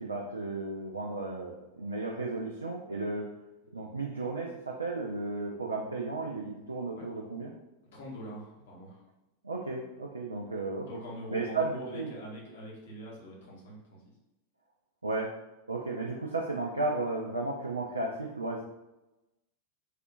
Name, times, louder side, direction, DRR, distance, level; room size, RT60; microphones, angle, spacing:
voice 1, 0.0-3.3 3.7-7.5 9.4-10.9 11.3-12.1 15.0-15.3 15.7-18.6, right 3 dB, 80° right, -2 dB, 0.3 m, -34 dB
voice 2, 7.9-9.0 10.8-14.0, equal, 60° left, -4 dB, 0.9 m, -43 dB
3.4 x 2.3 x 2.5 m, 0.97 s
figure-of-eight pair, 90°, 0 cm